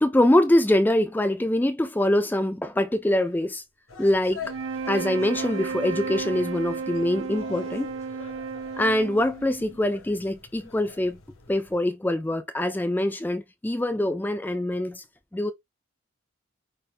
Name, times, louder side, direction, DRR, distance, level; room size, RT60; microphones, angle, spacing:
voice 1, 0.0-3.6 4.0-4.5 4.9-7.9 8.8-11.2 11.5-15.0 15.3-15.5, left 1 dB, 10° left, 0.3 m, -24 dB
sound 1, 3.9-11.8, left 5 dB, 85° left, 1.0 m, -44 dB
sound 2, 4.4-9.8, right 5 dB, 80° right, 0.8 m, -33 dB
5.6 x 2.2 x 3.3 m
head